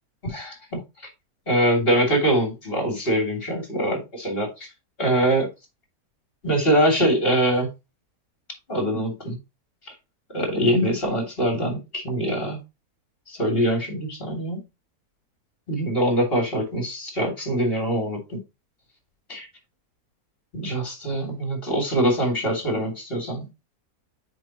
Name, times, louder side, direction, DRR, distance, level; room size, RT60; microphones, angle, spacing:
voice 1, 0.2-0.8 1.5-4.7 5.0-5.5 6.4-7.7 8.7-9.4 10.3-12.6 13.3-14.6 15.7-18.4 19.3-19.5 20.5-23.5, right 1 dB, 35° left, 3.1 m, -23 dB
7.6 x 5.2 x 3.0 m
omnidirectional pair, 1.6 m